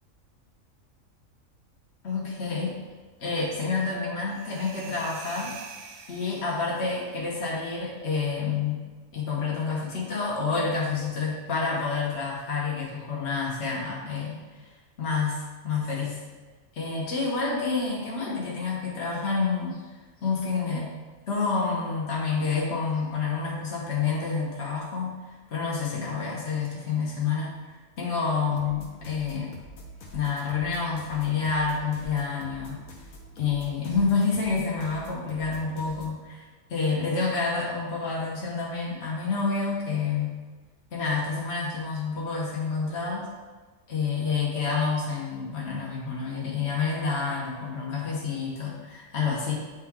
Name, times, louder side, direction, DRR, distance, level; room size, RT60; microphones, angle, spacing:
voice 1, 2.0-2.8 3.2-5.5 6.1-8.8 9.1-14.4 15.0-16.2 16.7-19.8 20.2-20.9 21.3-25.2 25.5-29.5 30.1-32.8 33.4-40.4 40.9-43.3 43.9-49.5, left 4 dB, 55° left, -4 dB, 1.4 m, -28 dB
sound 1, 4.3-7.0, right 5 dB, 90° right, 1.0 m, -45 dB
sound 2, 28.6-36.2, left 1 dB, 75° left, 1.3 m, -46 dB
8.9 x 3.1 x 3.6 m, 1.3 s
omnidirectional pair, 1.4 m